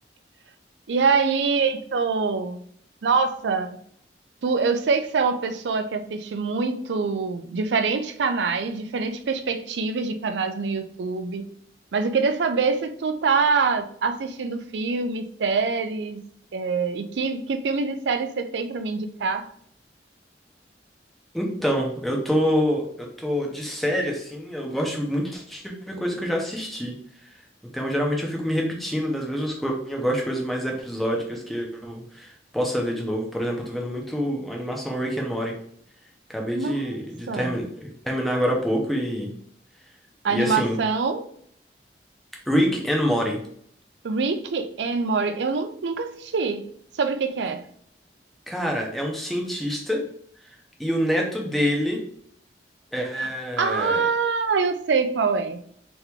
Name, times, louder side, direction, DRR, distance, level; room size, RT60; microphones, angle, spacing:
voice 1, 0.9-2.6 3.0-3.8 4.4-11.5 11.9-16.2 16.5-19.5 36.6-37.0 37.3-37.5 40.2-41.2 44.0-46.6 47.0-47.6 53.2-53.3 53.6-55.6, right 4 dB, 85° right, 9 dB, 0.5 m, -25 dB
voice 2, 21.3-26.9 27.2-27.3 27.7-35.5 36.3-39.3 40.3-40.8 42.5-43.4 48.5-50.0 50.8-52.0 52.9-54.0, equal, ahead, -1 dB, 0.8 m, -26 dB
3.6 x 3.0 x 3.6 m, 0.63 s
head